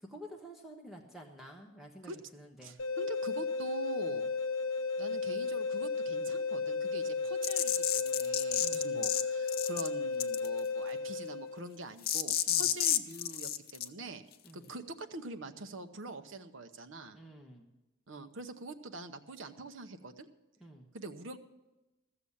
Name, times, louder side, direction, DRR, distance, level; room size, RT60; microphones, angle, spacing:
voice 1, 0.0-2.8 8.6-9.1 12.5-12.7 14.4-14.7 17.1-17.7 20.6-20.9, equal, ahead, 1 dB, 1.1 m, -50 dB
voice 2, 2.6-4.3 5.0-14.2 14.5-17.2 18.1-20.3 20.9-21.4, right 2 dB, 65° right, 8 dB, 0.9 m, -45 dB
sound 1, 2.8-11.7, left 4 dB, 75° left, 1.1 m, -34 dB
sound 2, 7.4-9.2 9.5-9.9 10.2-10.6 12.0-13.8, left 10 dB, 45° left, 0.5 m, -30 dB
14.5 x 7.0 x 8.6 m, 1.1 s
head